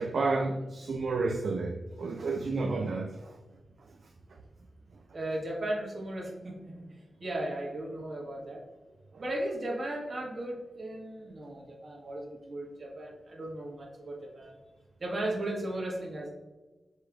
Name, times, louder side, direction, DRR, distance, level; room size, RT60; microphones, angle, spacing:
voice 1, 0.0-3.4 3.8-3.9 4.3-4.4 9.1-9.2, right 3 dB, 70° right, 3 dB, 0.3 m, -31 dB
voice 2, 5.1-8.6 9.2-14.5 15.0-16.3, right 1 dB, 55° right, -1 dB, 1.3 m, -36 dB
5.5 x 3.3 x 2.4 m, 1.2 s
cardioid pair, 70°, 0 cm